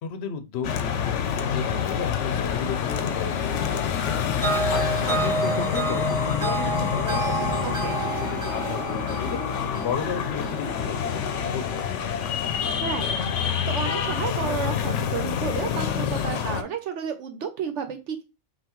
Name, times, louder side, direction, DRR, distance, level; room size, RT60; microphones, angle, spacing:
voice 1, 0.0-11.9, left 7 dB, 65° left, 9 dB, 0.9 m, -34 dB
sound 1, 0.6-16.6, left 8 dB, 85° left, 0.9 m, -27 dB
sound 2, 2.0-12.3, left 2 dB, 25° left, 1.3 m, -39 dB
sound 3, 4.4-11.5, right 4 dB, 35° right, 0.7 m, -30 dB
voice 2, 7.6-8.0 12.8-18.2, right 7 dB, 80° right, 8 dB, 1.0 m, -32 dB
5.6 x 2.5 x 3.0 m, 0.26 s
omnidirectional pair, 1.2 m